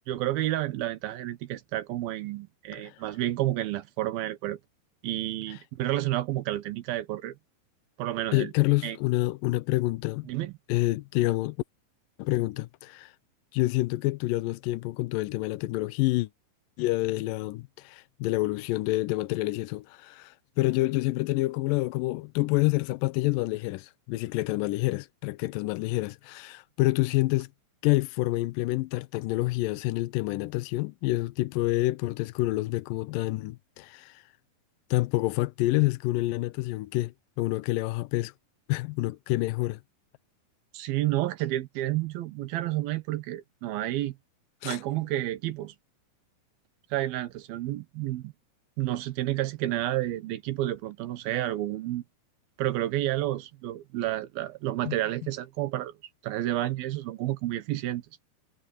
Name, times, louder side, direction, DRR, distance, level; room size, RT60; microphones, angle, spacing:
voice 1, 0.1-4.6 5.0-7.4 8.0-8.5 8.8-9.0 10.3-10.5 40.7-44.2 44.6-45.7 46.9-48.3 48.8-52.0 52.6-55.9 56.2-58.0, right 15 dB, 80° right, 2.9 m, -30 dB
voice 2, 8.3-10.3 10.7-11.6 12.2-13.1 13.5-16.3 16.8-27.5 27.8-34.2 34.9-38.3 38.7-39.8 44.6-44.8 54.9-55.0, left 19 dB, 75° left, 2.2 m, -28 dB
omnidirectional pair, 4.3 m